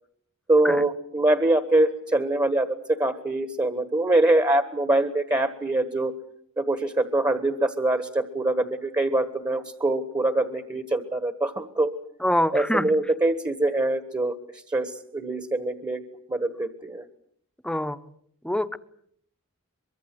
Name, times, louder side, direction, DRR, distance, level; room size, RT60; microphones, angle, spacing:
voice 1, 0.5-6.1 6.6-11.9 12.5-14.3 14.7-16.0 16.3-17.0, right 2 dB, 20° right, 9 dB, 1.5 m, -24 dB
voice 2, 12.2-12.9 17.6-18.0 18.4-18.8, left 1 dB, 5° left, 12 dB, 1.0 m, -24 dB
24.0 x 23.5 x 7.9 m, 0.68 s
head